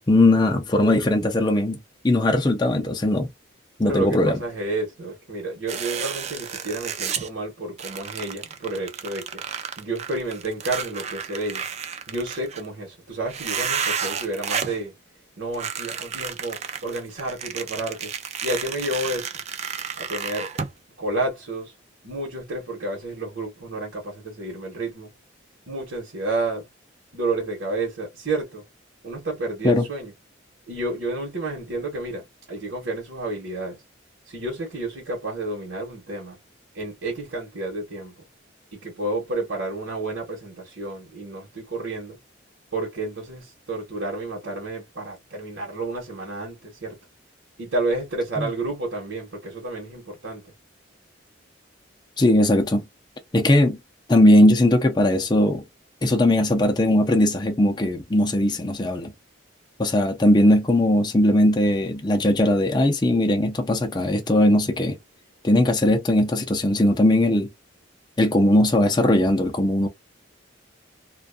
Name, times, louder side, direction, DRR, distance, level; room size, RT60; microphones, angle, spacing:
voice 1, 0.1-1.8 2.0-3.3 3.8-4.4 29.6-29.8 48.4-48.5 52.2-52.8 53.3-53.8 54.1-55.6 56.0-59.1 59.8-65.0 65.4-67.5 68.2-69.9, left 1 dB, 20° left, 0.5 m, -19 dB
voice 2, 3.8-9.4 9.8-11.6 12.1-14.9 15.4-18.1 18.4-19.3 20.0-20.5 21.0-21.7 22.0-25.1 25.7-26.7 27.1-28.6 29.0-30.1 30.7-33.8 34.3-36.4 36.7-38.1 38.7-42.2 42.7-47.0 47.6-50.4, right 2 dB, 70° right, 1.0 m, -30 dB
sound 1, 5.7-7.3 7.8-12.7 13.3-14.8 15.5-20.7, right 7 dB, 35° right, 0.4 m, -31 dB
2.5 x 2.3 x 2.4 m
head